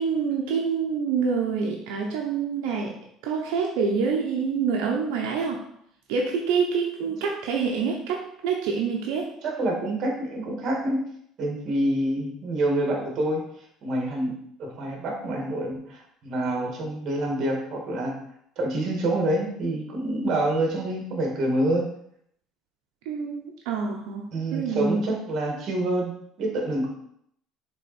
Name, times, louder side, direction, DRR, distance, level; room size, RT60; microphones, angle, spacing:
voice 1, 0.0-2.9 3.2-5.6 6.1-9.3 23.0-25.1, right 5 dB, 90° right, 0 dB, 1.0 m, -26 dB
voice 2, 9.4-11.0 11.4-13.4 13.8-14.3 14.6-18.2 18.6-21.9 24.3-26.1 26.4-26.9, right 1 dB, 45° right, 0 dB, 2.2 m, -27 dB
7.0 x 3.9 x 4.4 m, 0.71 s
cardioid pair, 135°, 0 cm